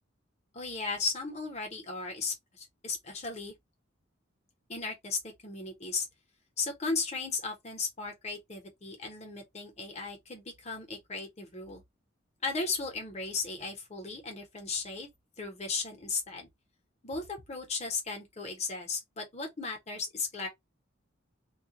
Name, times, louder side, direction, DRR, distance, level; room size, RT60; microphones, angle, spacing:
voice 1, 0.5-3.5 4.7-6.1 6.6-11.8 12.4-15.1 15.4-16.5 17.0-20.5, left 4 dB, 35° left, 0.9 m, -36 dB
2.3 x 2.2 x 2.8 m
head